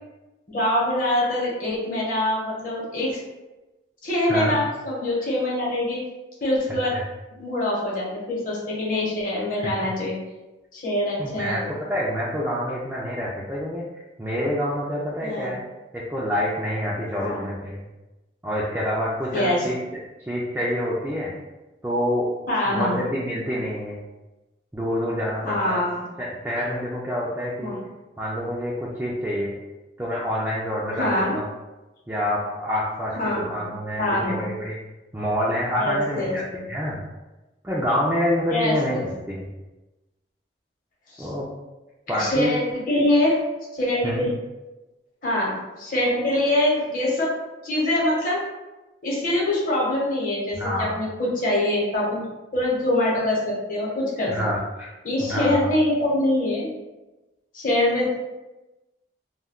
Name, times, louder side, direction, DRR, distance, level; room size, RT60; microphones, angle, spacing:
voice 1, 0.5-3.2 4.0-6.0 6.4-6.9 7.4-10.1 10.7-11.7 15.2-15.5 17.2-17.4 19.3-19.6 22.5-23.0 25.4-26.0 27.6-27.8 30.9-31.3 33.1-34.5 35.8-36.6 38.5-39.1 41.1-41.3 42.1-42.6 42.9-43.4 43.7-44.3 45.2-47.3 47.6-48.4 49.0-52.3 52.5-54.5 55.0-56.7 57.5-58.1, left 1 dB, 45° left, -5 dB, 0.8 m, -24 dB
voice 2, 11.2-13.8 14.2-15.6 15.9-17.9 18.4-19.8 20.2-21.3 21.8-22.3 22.6-24.0 24.7-25.8 26.2-27.7 28.2-29.6 30.0-31.5 32.1-34.8 35.1-37.0 37.6-39.0 39.3-39.5 41.2-41.5 42.1-42.5 44.0-44.3 50.6-50.9 54.3-54.9 55.2-55.7, equal, 10° right, -6 dB, 0.3 m, -27 dB
2.2 x 2.2 x 3.5 m, 1.1 s
head